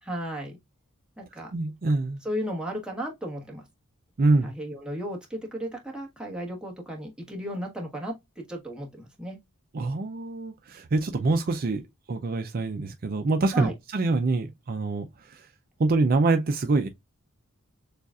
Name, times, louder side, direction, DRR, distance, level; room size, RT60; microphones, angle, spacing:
voice 1, 0.0-0.6 1.2-1.5 2.2-3.6 4.4-9.4 13.5-13.7, equal, 5° right, 1.3 m, -34 dB
voice 2, 1.5-2.2 4.2-4.5 9.7-11.8 12.1-15.5 15.8-16.9, right 3 dB, 40° right, 0.4 m, -25 dB
6.7 x 2.4 x 2.4 m
head